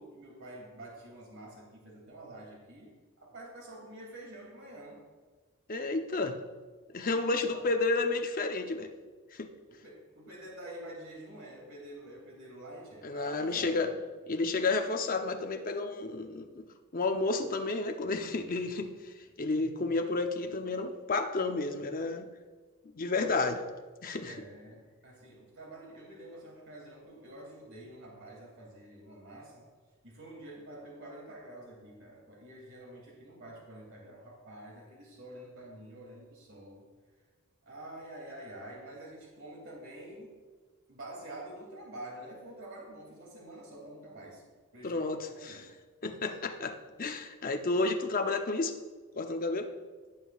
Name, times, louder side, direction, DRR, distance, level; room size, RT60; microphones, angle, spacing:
voice 1, 0.0-2.9 3.2-5.0 7.3-7.6 9.7-14.0 24.3-29.7 30.0-36.8 37.6-40.3 40.9-44.4 44.7-45.8, right 1 dB, 60° right, -2 dB, 2.7 m, -47 dB
voice 2, 5.7-6.4 6.9-8.9 9.3-9.5 13.0-13.9 14.3-16.6 16.9-22.3 22.9-23.6 24.0-24.4 44.8-45.6 46.0-48.8 49.1-49.7, left 3 dB, 40° left, 5 dB, 0.7 m, -31 dB
17.0 x 7.3 x 2.4 m, 1.4 s
head